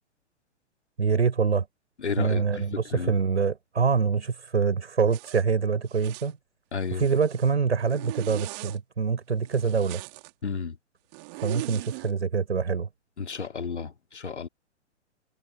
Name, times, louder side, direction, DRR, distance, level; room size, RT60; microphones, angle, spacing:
voice 1, 1.0-1.7 2.2-6.4 6.9-10.0 11.4-12.9, right 5 dB, 70° right, 5.4 m, -25 dB
voice 2, 2.0-2.5 2.9-3.1 6.7-7.0 10.4-10.8 13.2-14.5, left 5 dB, 70° left, 3.0 m, -32 dB
Zipper (clothing), 5.1-5.4 5.9-6.3 6.8-7.5 7.9-8.8 9.4-10.3 11.1-12.1, right 29 dB, 35° right, 3.7 m, -40 dB
figure-of-eight pair, 110°, 36 cm